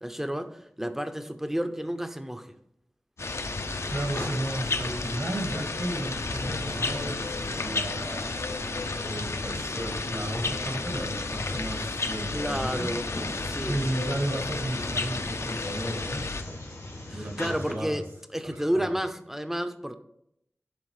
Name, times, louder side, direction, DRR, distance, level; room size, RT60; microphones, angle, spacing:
voice 1, 0.0-2.5 12.3-13.8 17.1-18.0 18.3-20.0, equal, 5° right, 9 dB, 0.5 m, -31 dB
sound 1, 3.2-17.7, left 1 dB, 90° left, 2.0 m, -42 dB
sound 2, 3.2-16.4, left 3 dB, 65° left, 0.5 m, -32 dB
voice 2, 3.9-8.3 8.9-12.9 13.6-16.2 17.1-18.0 18.4-18.9, right 1 dB, 60° right, 2 dB, 1.6 m, -34 dB
10.5 x 3.9 x 3.1 m, 0.78 s
wide cardioid pair, 65°, 5 cm